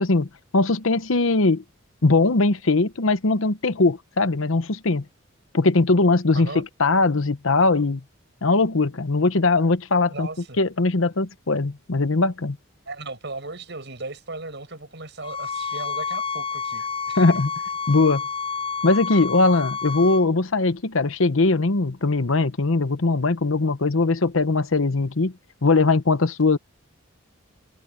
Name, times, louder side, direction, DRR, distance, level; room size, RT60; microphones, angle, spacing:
voice 1, 0.0-1.6 2.0-5.0 5.5-8.0 8.4-10.3 10.6-12.6 17.2-17.5 17.9-18.2 18.8-25.3 25.6-26.6, left 3 dB, 70° left, 1.0 m, -20 dB
voice 2, 6.3-6.7 10.1-10.6 12.9-17.2, right 3 dB, 55° right, 7.5 m, -36 dB
sound 1, 15.2-20.2, left 5 dB, 25° left, 5.2 m, -29 dB
head